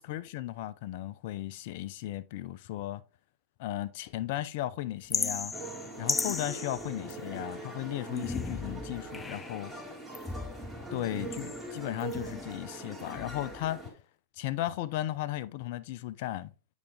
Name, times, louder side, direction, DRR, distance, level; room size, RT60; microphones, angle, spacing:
voice 1, 0.1-3.0 3.6-5.5 6.0-9.7 10.9-13.8 14.4-16.5, left 14 dB, 60° left, 0.6 m, -35 dB
sound 1, 5.1-7.5 8.1-9.7 10.1-12.6 13.0-13.7, left 4 dB, 15° left, 0.5 m, -37 dB
sound 2, 5.5-13.9, right 2 dB, 5° right, 3.6 m, -42 dB
8.4 x 4.9 x 3.3 m
hypercardioid pair, 105°, 0 cm